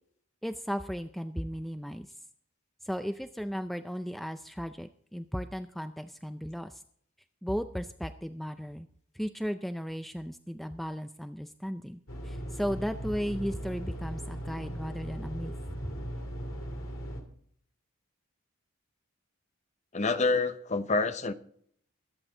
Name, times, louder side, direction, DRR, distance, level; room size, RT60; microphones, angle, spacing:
voice 1, 0.4-2.1 2.8-6.8 7.4-8.9 9.1-12.0 12.2-15.5, equal, ahead, 0.4 m, -35 dB
sound 1, 12.1-17.2, equal, 70° left, 2.5 m, -38 dB
voice 2, 19.9-21.3, left 3 dB, 30° left, 0.7 m, -27 dB
22.5 x 8.2 x 3.9 m
head